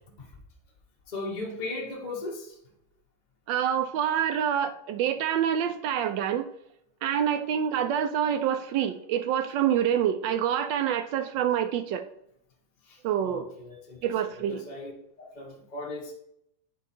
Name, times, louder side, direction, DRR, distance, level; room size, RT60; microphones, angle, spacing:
voice 1, 1.1-2.6 12.9-14.0 14.3-14.9 15.2-16.1, left 2 dB, 40° left, -1 dB, 0.6 m, -37 dB
voice 2, 3.5-6.4 7.0-12.0 13.0-13.5 14.0-14.6, right 9 dB, 75° right, 9 dB, 1.1 m, -26 dB
9.1 x 3.1 x 4.1 m, 0.74 s
omnidirectional pair, 2.3 m